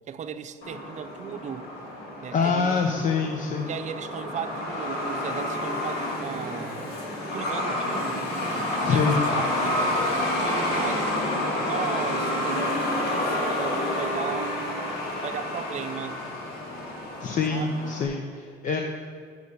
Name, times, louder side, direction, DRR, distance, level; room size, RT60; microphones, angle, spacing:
voice 1, 0.1-1.7 2.2-3.0 3.7-6.9 7.3-8.2 8.8-9.8 10.4-11.1 11.3-14.6 15.2-16.2 17.5-17.9, right 8 dB, 45° right, 10 dB, 0.6 m, -36 dB
Truck, 0.6-18.0, left 1 dB, 70° left, 2.5 m, -29 dB
voice 2, 2.3-3.7 8.8-9.3 17.2-18.8, left 5 dB, 50° left, 3 dB, 0.8 m, -25 dB
7.9 x 6.6 x 8.2 m, 2.3 s
cardioid pair, 110°, 17 cm